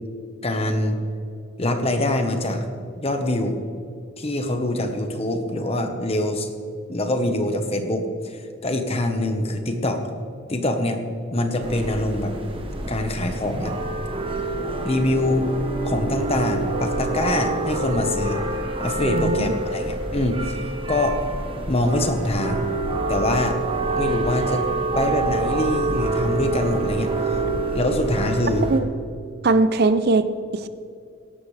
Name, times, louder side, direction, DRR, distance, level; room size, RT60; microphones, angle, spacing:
voice 1, 0.4-1.0 1.6-2.6 3.0-3.6 4.2-6.5 6.9-10.0 10.5-11.0 11.3-12.3 12.9-13.7 14.8-15.4 15.8-18.4 18.8-21.2 21.7-22.7 23.1-23.6 23.9-24.6 24.9-27.1 27.7-28.7, left 1 dB, 30° left, 6 dB, 1.2 m, -24 dB
sound 1, 11.6-28.8, right 2 dB, 30° right, 1.2 m, -27 dB
voice 2, 19.0-19.6 27.5-27.6 28.7-28.9 29.4-30.7, right 3 dB, 55° right, 12 dB, 0.5 m, -21 dB
17.0 x 12.0 x 3.3 m, 2.5 s
head